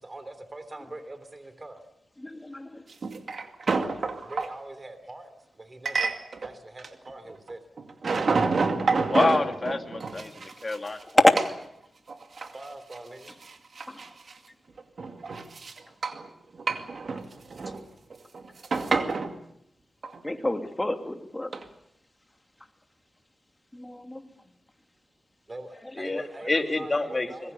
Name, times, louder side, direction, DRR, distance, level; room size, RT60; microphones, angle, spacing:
voice 1, 0.0-1.8 4.2-6.1 6.4-7.6 12.5-13.4 25.5-27.5, right 2 dB, 30° right, 10 dB, 3.2 m, -42 dB
voice 2, 2.2-2.8 11.2-11.3 13.9-14.0 20.2-21.5 23.7-24.3, left 1 dB, 15° left, 5 dB, 2.9 m, -27 dB
sound 1, 2.9-4.5 5.9-6.5 6.8-7.5 7.8-11.0 11.4-11.6 12.1-12.6 12.9-13.0 13.3-14.3 14.8-16.3 16.5-17.8 18.1-19.3 20.0-20.2 21.5-21.6, right 4 dB, 65° right, 2.3 m, -28 dB
voice 3, 9.1-11.1 26.0-27.5, left 2 dB, 35° left, 5 dB, 2.6 m, -27 dB
25.5 x 21.5 x 7.0 m, 0.77 s
cardioid pair, 70°, 0 cm